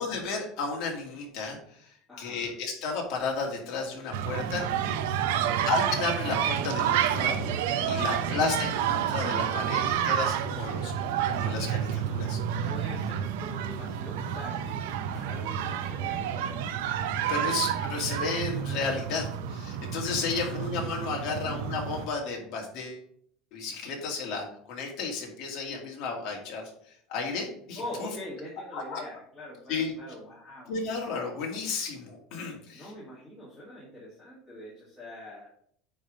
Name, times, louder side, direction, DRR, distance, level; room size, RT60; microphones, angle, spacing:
voice 1, 0.0-1.9 2.2-5.0 5.7-7.6 7.9-10.9 11.2-12.7 17.3-23.0 23.5-26.6 27.1-28.1 28.7-29.0 29.7-29.9 30.7-32.9, left 4 dB, 45° left, 0 dB, 2.1 m, -33 dB
voice 2, 2.1-2.5 5.3-5.7 8.2-8.3 12.6-17.6 20.3-20.8 21.3-21.6 27.7-30.8 32.7-35.5, left 1 dB, 10° left, -9 dB, 2.2 m, -44 dB
sound 1, 4.1-22.1, right 9 dB, 80° right, 0.6 m, -29 dB
9.1 x 3.5 x 5.1 m, 0.65 s
cardioid pair, 175°, 0 cm